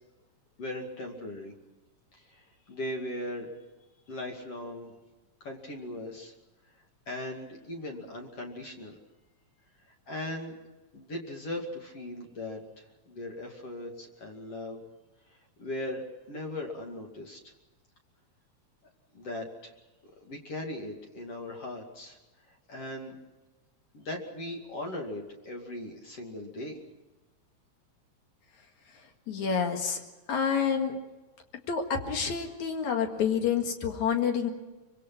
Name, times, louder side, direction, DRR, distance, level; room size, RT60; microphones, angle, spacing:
voice 1, 0.6-1.5 2.1-3.5 4.1-5.0 5.4-6.3 7.1-9.0 10.1-10.6 10.9-14.8 15.6-17.4 19.1-19.7 20.0-22.2 22.5-23.2 23.9-26.8, left 1 dB, 50° left, 2 dB, 3.4 m, -39 dB
voice 2, 29.3-30.0 30.3-31.0 31.7-34.5, left 7 dB, 70° left, 4 dB, 3.3 m, -28 dB
25.0 x 23.5 x 6.0 m, 1.1 s
omnidirectional pair, 3.4 m